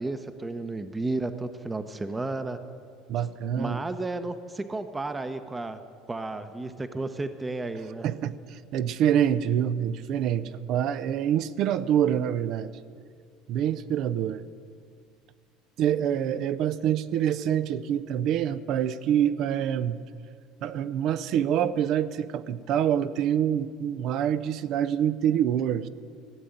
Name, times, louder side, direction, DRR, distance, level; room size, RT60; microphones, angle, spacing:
voice 1, 0.0-2.6 3.6-5.8 6.1-8.1, right 2 dB, 15° right, 9 dB, 0.8 m, -32 dB
voice 2, 3.1-3.8 8.0-12.7 13.5-14.4 15.8-20.0 20.6-25.9, right 9 dB, 60° right, 15 dB, 0.6 m, -26 dB
15.0 x 7.7 x 9.7 m, 2.2 s
supercardioid pair, 95°, 0 cm